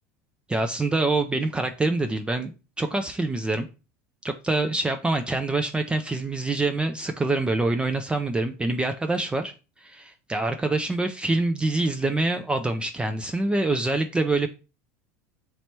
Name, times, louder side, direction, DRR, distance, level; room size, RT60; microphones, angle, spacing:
voice 1, 0.5-3.7 4.2-9.5 9.8-14.5, right 2 dB, 10° right, 0.3 m, -25 dB
3.2 x 2.9 x 4.3 m
hypercardioid pair, 95°, 8 cm